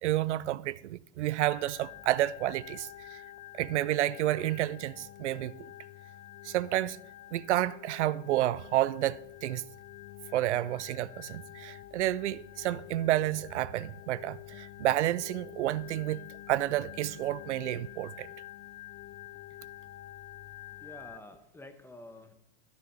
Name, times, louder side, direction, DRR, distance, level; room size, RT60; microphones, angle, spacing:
voice 1, 0.0-3.2 3.5-5.5 6.4-7.0 7.3-9.6 10.3-18.3, right 14 dB, 85° right, 0.5 m, -30 dB
Organ, 1.5-21.2, left 14 dB, 25° left, 0.4 m, -48 dB
voice 2, 20.8-22.3, left 2 dB, 5° left, 1.1 m, -49 dB
13.5 x 8.3 x 5.3 m
hypercardioid pair, 125°, 34 cm